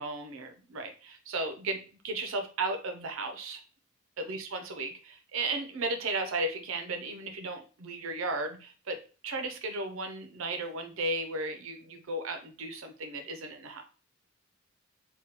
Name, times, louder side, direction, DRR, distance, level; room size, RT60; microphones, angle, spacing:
voice 1, 0.0-3.6 4.2-13.8, right 2 dB, 70° right, 7 dB, 0.5 m, -35 dB
3.5 x 2.2 x 2.8 m, 0.36 s
head